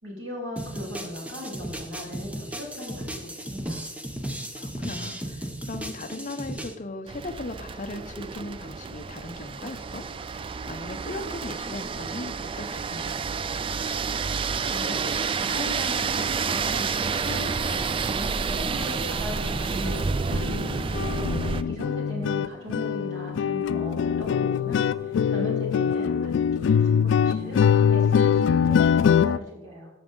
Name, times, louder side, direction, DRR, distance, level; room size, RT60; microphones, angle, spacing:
voice 1, 0.0-3.8 14.3-16.9 17.2-20.8 21.7-26.3 26.6-29.9, left 1 dB, 80° right, -3 dB, 3.7 m, -38 dB
sound 1, 0.6-6.7, right 1 dB, 5° right, 0.7 m, -35 dB
voice 2, 4.6-10.1 10.7-13.3 21.3-21.7, left 2 dB, 40° left, 9 dB, 0.7 m, -38 dB
sound 2, 7.1-21.6, right 5 dB, 30° right, 0.3 m, -29 dB
sound 3, 19.4-19.5 19.8-20.0 20.3-29.4, left 7 dB, 75° left, 0.3 m, -23 dB
13.0 x 7.1 x 3.8 m, 1.0 s
head